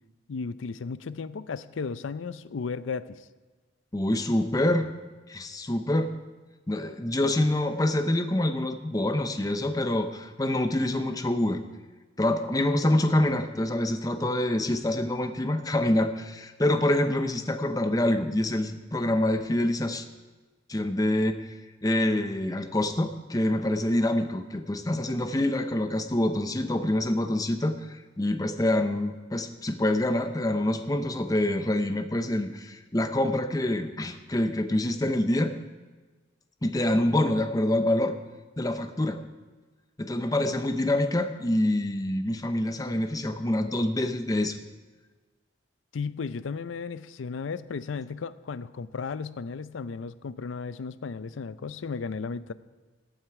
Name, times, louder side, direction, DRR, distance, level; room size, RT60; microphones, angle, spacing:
voice 1, 0.3-3.2 45.9-52.5, left 5 dB, 90° left, 16 dB, 0.5 m, -35 dB
voice 2, 3.9-4.9 5.3-6.2 6.7-11.6 12.2-20.0 20.7-21.3 21.8-35.5 36.6-38.2 38.6-39.2 40.0-44.6, left 1 dB, 20° left, 8 dB, 0.7 m, -26 dB
14.5 x 9.1 x 4.7 m, 1.3 s
head